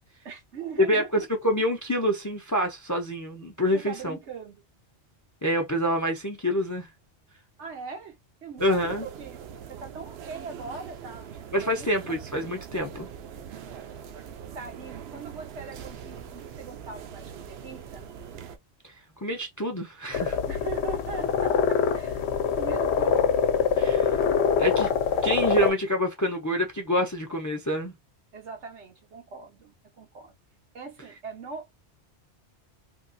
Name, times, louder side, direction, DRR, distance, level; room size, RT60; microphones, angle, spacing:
voice 1, 0.2-1.2 3.7-4.6 7.6-11.9 14.5-18.1 20.5-22.2 22.5-23.3 28.3-30.3 30.7-31.7, right 5 dB, 90° right, 1.3 m, -41 dB
voice 2, 0.8-4.2 5.4-6.9 8.6-9.0 11.5-13.1 18.8-18.9 19.2-20.4 23.8-24.2 24.6-24.9 25.2-27.9, equal, 25° left, 0.4 m, -26 dB
sound 1, 8.6-18.6, right 8 dB, 70° right, 0.8 m, -42 dB
sound 2, 20.1-25.7, left 6 dB, 75° left, 0.8 m, -24 dB
3.4 x 2.4 x 2.6 m
omnidirectional pair, 1.1 m